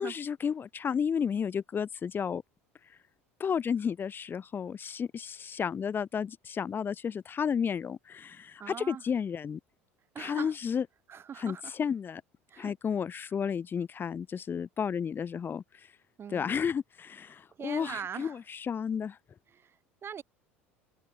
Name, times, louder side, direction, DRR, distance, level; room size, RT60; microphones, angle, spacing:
voice 1, 0.0-2.4 2.9-3.0 3.4-9.6 10.2-10.9 11.4-12.2 12.6-15.9 16.3-19.2, left 7 dB, 30° left, 1.1 m, -32 dB
voice 2, 8.6-9.0 10.1-10.5 11.1-11.7 12.5-12.7 16.2-16.5 17.6-18.4 19.5-20.2, right 7 dB, 35° right, 2.6 m, -41 dB
hypercardioid pair, 75°, 7 cm